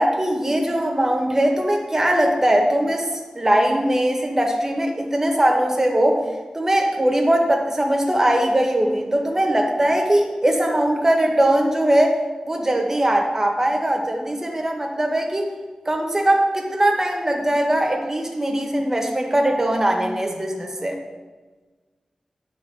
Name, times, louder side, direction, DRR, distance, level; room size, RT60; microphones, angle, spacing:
voice 1, 0.0-3.1 3.3-6.2 6.5-15.5 15.9-21.0, right 1 dB, 20° right, 2 dB, 1.0 m, -20 dB
9.8 x 3.4 x 3.3 m, 1.3 s
wide cardioid pair, 90°, 2 cm